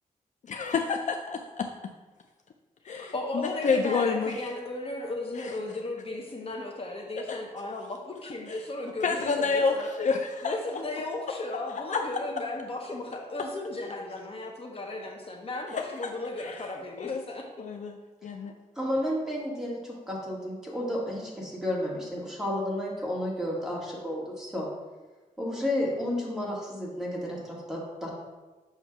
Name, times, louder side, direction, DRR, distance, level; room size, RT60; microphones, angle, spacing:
voice 1, 0.5-1.9 2.9-4.4 5.4-5.5 7.3-7.4 8.5-8.6 9.0-10.6 11.9-12.0 15.7-16.1 16.4-16.7 17.0-17.2 17.6-18.5, left 5 dB, 55° left, 4 dB, 0.4 m, -29 dB
voice 2, 2.9-9.9 10.4-17.5, left 2 dB, 40° left, 0 dB, 0.9 m, -35 dB
voice 3, 18.8-24.7 25.4-28.1, left 1 dB, 5° right, -4 dB, 1.7 m, -32 dB
7.3 x 2.7 x 5.8 m, 1.2 s
wide cardioid pair, 115°, 15 cm